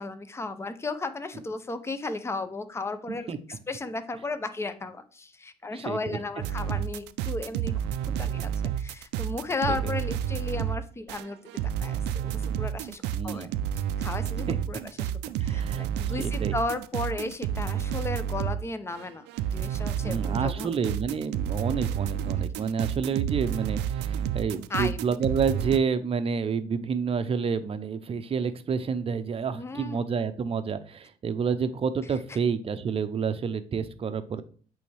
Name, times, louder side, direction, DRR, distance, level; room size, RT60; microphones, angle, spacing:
voice 1, 0.0-8.5 8.8-11.4 11.8-13.5 14.0-15.1 15.4-19.3 19.5-20.8 24.7-25.0 29.5-30.0 32.3-32.4, left 3 dB, 15° left, 11 dB, 0.6 m, -34 dB
voice 2, 3.1-3.4 5.7-6.2 9.7-9.8 13.1-13.6 14.5-14.6 15.4-16.6 20.0-34.4, right 6 dB, 35° right, 11 dB, 0.6 m, -29 dB
sound 1, 6.4-18.6 18.9-25.8, right 9 dB, 85° right, 0.4 m, -30 dB
8.4 x 3.5 x 3.3 m, 0.43 s
cardioid pair, 110°, 17 cm